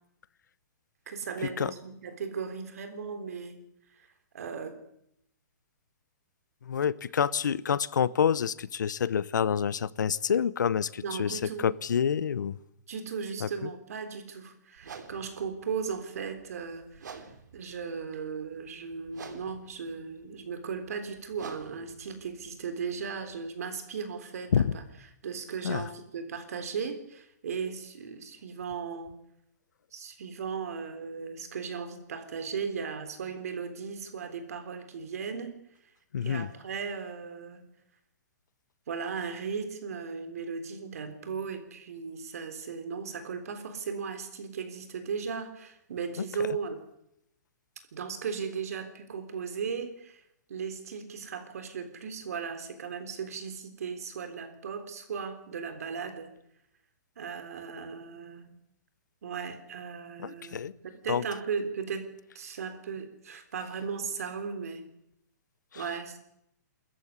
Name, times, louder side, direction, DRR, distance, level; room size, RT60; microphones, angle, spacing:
voice 1, 1.1-3.6 4.0-4.1 4.3-4.8 10.9-11.7 12.9-24.8 25.2-29.1 29.9-35.6 36.2-37.7 38.9-46.8 47.9-50.2 50.5-56.3 57.2-58.6 59.2-60.6 60.9-64.8 65.7-66.2, right 6 dB, 55° right, 9 dB, 3.7 m, -37 dB
voice 2, 6.6-12.6 13.4-13.7 24.5-24.7 25.6-25.9 36.1-36.5 46.2-46.3 60.2-60.7 61.1-61.2 65.7-65.8, left 7 dB, 90° left, 19 dB, 1.0 m, -28 dB
sound 1, 14.8-23.5, right 5 dB, 80° right, 3.4 m, -50 dB
23.5 x 14.5 x 9.8 m, 0.80 s
hypercardioid pair, 180°, 10 cm